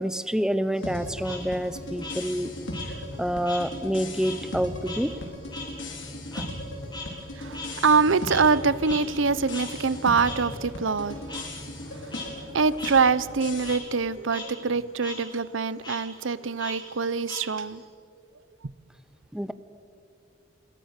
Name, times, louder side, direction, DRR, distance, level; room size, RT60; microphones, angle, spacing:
voice 1, 0.0-2.5 2.8-5.1 6.3-6.5 19.3-19.5, equal, 5° right, 0.8 m, -28 dB
Frog, 0.7-3.7 4.0-8.6 8.8-9.0 9.5-9.7 10.2-10.4 11.3-11.4 11.9-12.3 12.8-12.9 13.3-13.8 14.2-14.4 14.7-15.2 15.8-16.0 16.6-17.8, left 3 dB, 25° left, 6.8 m, -40 dB
sound 1, 0.8-13.7, left 1 dB, 75° left, 4.7 m, -37 dB
voice 2, 7.4-11.5 12.0-12.1 12.5-17.8, right 4 dB, 85° right, 0.7 m, -24 dB
29.5 x 22.5 x 6.7 m
head